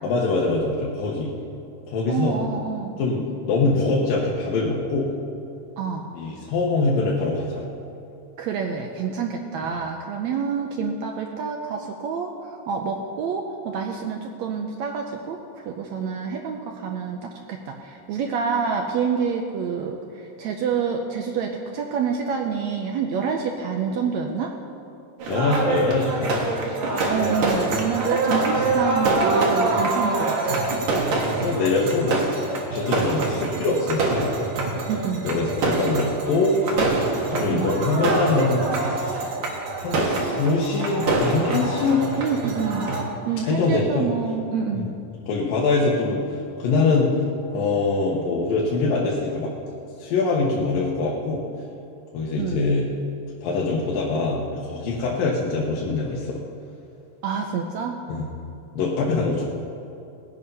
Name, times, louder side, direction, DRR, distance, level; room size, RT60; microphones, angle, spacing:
voice 1, 0.0-1.3 1.9-2.3 3.0-5.1 6.1-7.7 25.3-26.4 29.7-29.9 31.2-34.3 35.2-39.2 39.8-42.0 43.4-44.1 44.7-44.9 45.3-46.2 46.6-47.1 47.5-49.5 50.0-51.4 52.1-52.8 53.4-56.4 58.1-58.3 58.8-59.5, left 3 dB, 80° left, -4 dB, 2.9 m, -23 dB
voice 2, 2.1-3.0 5.8-6.1 8.4-24.5 27.1-30.6 34.9-35.3 37.5-37.9 42.2-42.9 43.3-44.9 52.4-52.6 57.2-58.0, right 6 dB, 80° right, 2 dB, 1.6 m, -27 dB
sound 1, 25.2-43.0, right 2 dB, 60° right, 2.7 m, -25 dB
18.5 x 8.3 x 5.5 m, 2.7 s
omnidirectional pair, 4.0 m